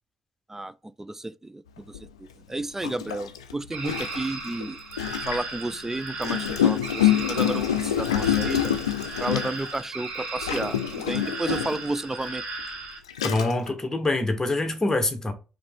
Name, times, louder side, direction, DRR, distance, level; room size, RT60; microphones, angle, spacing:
voice 1, 0.5-4.8 5.3-8.7 9.2-12.4, right 2 dB, 15° right, 0.3 m, -32 dB
Gurgling, 1.9-2.1 2.8-5.6 6.2-9.8 10.4-11.9 12.6-12.7 13.1-13.7, left 10 dB, 85° left, 0.4 m, -26 dB
sound 1, 3.7-13.0, right 3 dB, 65° right, 1.7 m, -36 dB
voice 2, 13.2-15.3, left 2 dB, 15° left, 1.1 m, -25 dB
4.8 x 3.1 x 3.5 m
figure-of-eight pair, 45°, 3 cm